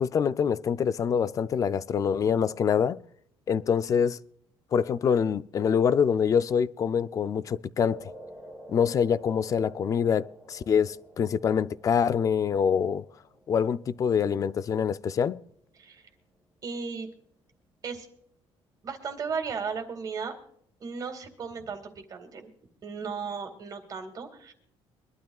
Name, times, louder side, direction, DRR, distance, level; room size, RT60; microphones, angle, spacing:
voice 1, 0.0-3.0 3.5-4.2 4.7-8.1 8.7-13.1 13.5-15.4, left 7 dB, 35° left, 0.4 m, -25 dB
sound 1, 7.8-16.3, equal, 5° left, 2.6 m, -50 dB
voice 2, 16.6-17.1 17.8-18.1 18.8-20.3 20.8-22.5 22.8-24.5, right 5 dB, 35° right, 2.2 m, -35 dB
23.5 x 12.0 x 2.4 m
cardioid pair, 155°, 10 cm